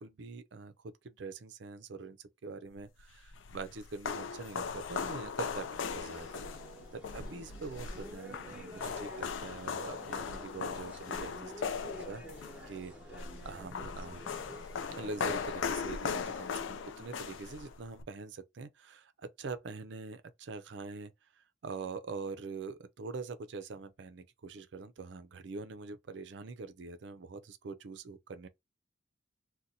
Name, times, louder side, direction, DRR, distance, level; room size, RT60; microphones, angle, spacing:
voice 1, 0.0-6.5 6.9-12.2 12.7-14.3 15.0-21.1 21.6-28.5, right 4 dB, 65° right, 0.5 m, -44 dB
sound 1, 3.0-18.0, left 6 dB, 70° left, 0.4 m, -39 dB
sound 2, 5.8-15.4, right 1 dB, 5° right, 0.9 m, -50 dB
2.6 x 2.2 x 4.0 m
head